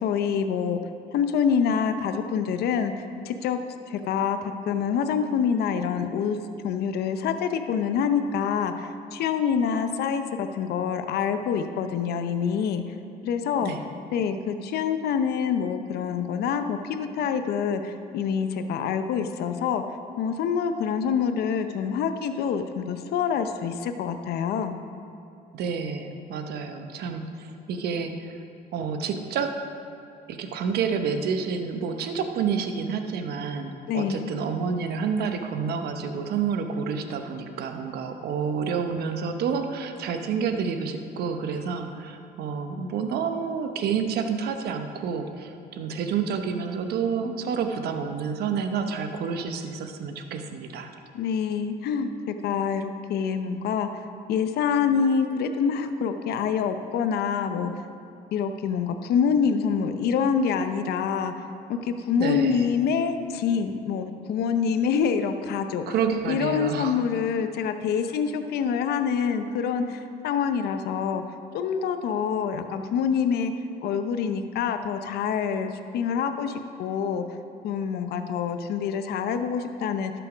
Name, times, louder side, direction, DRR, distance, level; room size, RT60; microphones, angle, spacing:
voice 1, 0.0-0.8 1.1-2.9 3.2-3.6 3.9-6.4 6.6-13.0 13.2-13.7 14.1-19.8 20.2-24.8 33.9-34.3 51.1-53.9 54.3-57.8 58.3-65.8 66.3-71.2 71.5-73.5 73.8-77.2 77.6-80.1, left 7 dB, 70° left, 8 dB, 0.7 m, -26 dB
voice 2, 25.5-28.4 28.7-29.5 30.3-50.9 62.2-62.7 65.9-67.0, right 6 dB, 70° right, 6 dB, 0.9 m, -29 dB
12.0 x 6.9 x 5.1 m, 2.7 s
cardioid pair, 110°, 17 cm